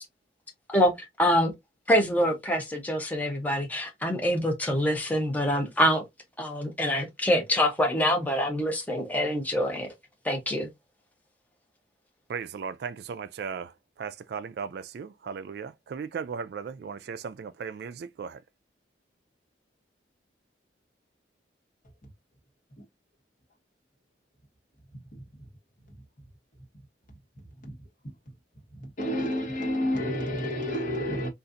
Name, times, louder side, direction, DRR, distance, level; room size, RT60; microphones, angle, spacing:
voice 1, 0.7-1.5 1.9-6.0 6.4-9.9 10.2-10.7, equal, 10° left, 0.6 m, -25 dB
voice 2, 12.3-13.7 14.0-18.4, right 6 dB, 60° right, 0.3 m, -36 dB
voice 3, 29.0-31.3, equal, 45° left, 1.2 m, -29 dB
3.9 x 2.4 x 2.5 m
head